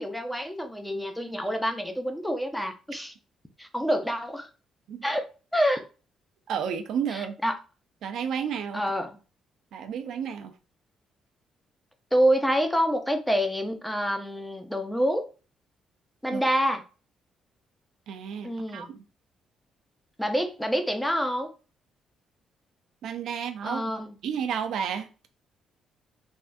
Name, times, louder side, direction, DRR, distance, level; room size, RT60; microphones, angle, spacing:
voice 1, 0.0-3.1 3.6-4.5 5.0-5.2 5.5-5.8 7.1-7.6 8.7-9.1 12.1-15.3 16.2-16.8 18.4-18.9 20.2-21.5 23.6-24.1, equal, 5° left, 0.6 m, -27 dB
voice 2, 6.5-7.4 8.0-8.8 9.7-10.5 16.3-16.4 18.1-19.0 23.0-23.9 24.2-25.1, right 7 dB, 75° right, 0.5 m, -31 dB
3.4 x 2.4 x 2.6 m
cardioid pair, 90°, 0 cm